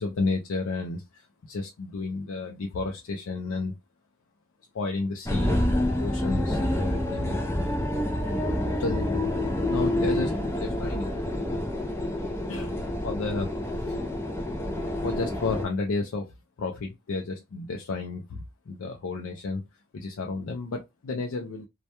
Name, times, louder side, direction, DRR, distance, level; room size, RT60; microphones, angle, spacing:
voice 1, 0.0-3.7 4.7-5.6 6.0-7.4 8.8-9.1 9.4-11.4 12.5-12.8 13.0-13.5 13.9-14.0 15.0-19.6 19.9-21.7, left 3 dB, 80° left, 0.4 m, -32 dB
sound 1, 5.2-15.7, left 1 dB, 10° left, 0.4 m, -28 dB
2.2 x 2.1 x 2.8 m
head